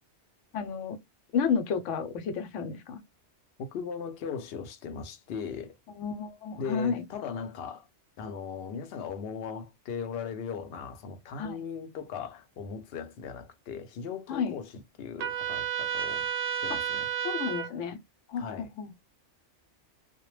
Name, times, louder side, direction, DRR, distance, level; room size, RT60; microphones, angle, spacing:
voice 1, 0.5-1.0 1.3-3.0 6.0-7.0 11.4-11.6 14.3-14.5 16.7-16.8 17.2-18.0 18.3-18.9, left 6 dB, 85° left, 1.0 m, -31 dB
voice 2, 3.6-5.7 6.6-7.9 8.2-14.7 15.0-16.3 16.6-17.1 18.4-18.7, left 6 dB, 65° left, 0.7 m, -38 dB
Trumpet, 15.2-17.7, right 9 dB, 60° right, 0.6 m, -31 dB
2.1 x 2.1 x 3.0 m
omnidirectional pair, 1.2 m